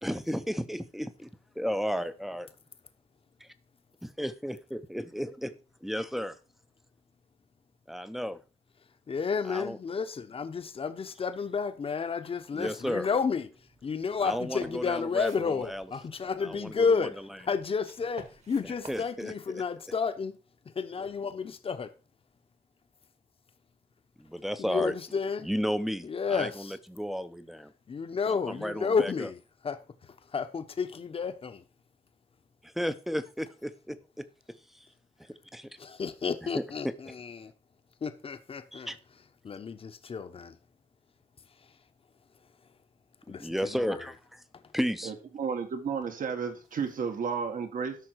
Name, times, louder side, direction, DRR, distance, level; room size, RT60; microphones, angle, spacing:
voice 1, 0.0-1.3 1.6-2.5 4.0-5.5 5.8-6.4 7.9-8.4 9.5-9.8 12.6-13.1 14.2-15.9 16.4-17.3 18.6-19.6 24.2-24.9 25.4-27.7 28.3-29.3 32.6-34.3 34.7-34.9 35.2-35.7 36.5-37.2 38.7-39.0 43.4-44.4 44.7-45.1, equal, ahead, 0.6 m, -33 dB
voice 2, 9.1-13.5 13.8-20.4 20.7-21.9 24.6-25.5 26.0-26.7 27.9-29.4 29.6-29.8 30.3-31.6 35.8-37.5 38.0-38.9 39.4-40.6 43.3-44.0, left 5 dB, 40° left, 0.9 m, -31 dB
sound 1, 13.5-19.1, right 3 dB, 50° right, 1.7 m, -53 dB
voice 3, 45.0-48.0, right 6 dB, 75° right, 1.8 m, -32 dB
13.0 x 5.9 x 4.6 m
wide cardioid pair, 155°, 14 cm